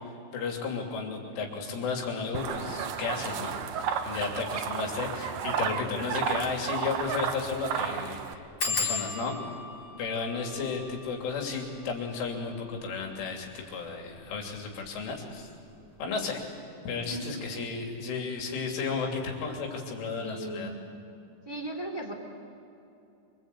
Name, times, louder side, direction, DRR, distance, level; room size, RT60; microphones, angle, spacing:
voice 1, 0.3-3.6 4.0-9.4 10.0-15.5 16.0-16.4 16.9-20.7, left 5 dB, 70° left, 2 dB, 5.5 m, -33 dB
sound 1, 2.3-8.3, right 7 dB, 85° right, 1.9 m, -32 dB
sound 2, 5.5-5.6 6.0-6.1 6.4-6.5 7.0-7.3 7.5-7.6 8.6-13.9 14.5-15.1 15.4-15.7 16.0-16.1, left 4 dB, 25° left, 4.8 m, -37 dB
voice 2, 20.2-20.7 21.4-22.1, right 1 dB, 15° right, 3 dB, 0.9 m, -37 dB
26.0 x 26.0 x 8.6 m, 2.8 s
omnidirectional pair, 5.9 m